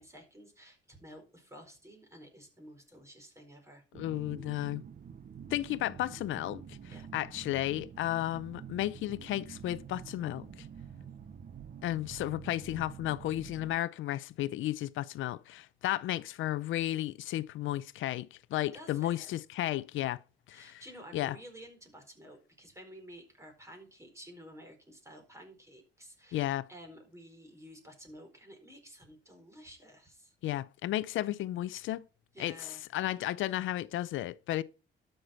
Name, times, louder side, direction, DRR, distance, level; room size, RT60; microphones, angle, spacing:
voice 1, 0.0-3.8 6.9-7.0 18.7-19.6 20.5-30.4 32.3-32.8, equal, 15° right, 4.6 m, -52 dB
voice 2, 3.9-4.8 5.5-6.8 7.1-10.7 11.8-20.2 20.5-20.8 21.1-21.4 26.3-26.7 30.4-32.0 32.4-32.5 32.9-34.6, left 14 dB, 80° left, 0.5 m, -33 dB
sound 1, 3.9-13.8, right 7 dB, 45° right, 0.9 m, -48 dB
12.5 x 6.6 x 4.3 m
cardioid pair, 90°, 20 cm